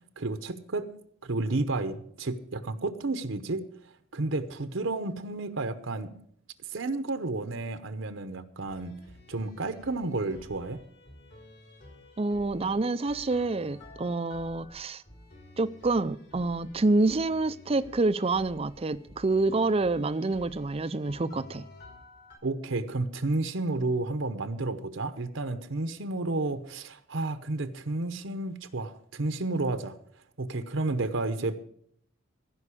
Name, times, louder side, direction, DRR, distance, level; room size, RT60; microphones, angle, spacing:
voice 1, 0.2-0.9 1.2-3.6 4.1-6.1 6.7-8.9 9.3-10.8 22.4-30.0 30.4-31.5, right 2 dB, 70° right, 0.9 m, -31 dB
sound 1, 8.7-22.4, left 1 dB, 55° left, 3.6 m, -52 dB
voice 2, 12.2-15.0 15.6-21.7, right 3 dB, 30° right, 0.5 m, -27 dB
16.0 x 5.4 x 8.4 m
head